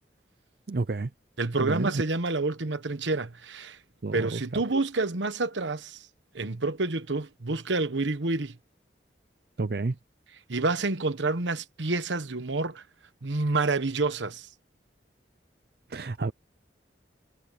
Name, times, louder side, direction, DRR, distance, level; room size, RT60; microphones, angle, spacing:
voice 1, 0.7-1.1 1.6-2.0 4.0-4.6 9.6-10.0 15.9-16.3, right 3 dB, 55° right, 0.5 m, -30 dB
voice 2, 1.4-3.8 4.1-6.0 6.3-8.6 10.5-12.8 13.2-14.5, right 3 dB, 80° right, 1.2 m, -28 dB
head